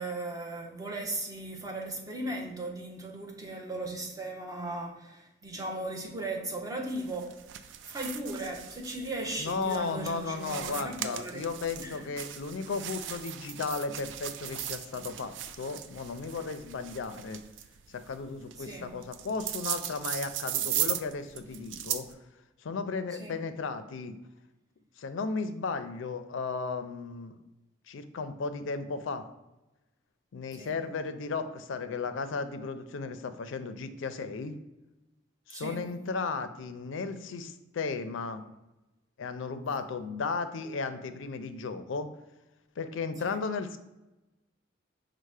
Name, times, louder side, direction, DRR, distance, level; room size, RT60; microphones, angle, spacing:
voice 1, 0.0-7.4 7.7-11.5 11.8-12.0 18.6-19.0 23.2-23.3 30.5-30.8 35.5-35.9 43.2-43.4, right 2 dB, 20° right, 0.6 m, -37 dB
sound 1, 6.9-22.1, right 11 dB, 65° right, 0.3 m, -38 dB
voice 2, 9.4-17.4 17.9-22.1 22.6-24.2 25.0-27.4 27.9-29.3 30.3-34.5 35.5-38.5 39.2-42.1 42.8-43.8, left 4 dB, 75° left, 0.4 m, -35 dB
5.4 x 2.1 x 4.7 m
head